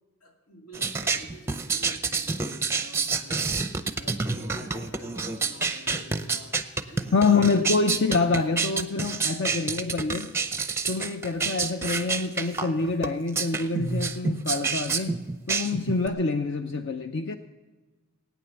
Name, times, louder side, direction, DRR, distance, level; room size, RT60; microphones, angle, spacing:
voice 1, 0.2-8.4, equal, 85° left, 1 dB, 2.8 m, -48 dB
sound 1, 0.7-16.1, right 4 dB, 10° right, 0.6 m, -28 dB
voice 2, 7.1-10.3 10.9-15.2 15.5-17.4, left 4 dB, 55° left, 8 dB, 0.5 m, -26 dB
17.5 x 9.4 x 7.0 m, 1.2 s
head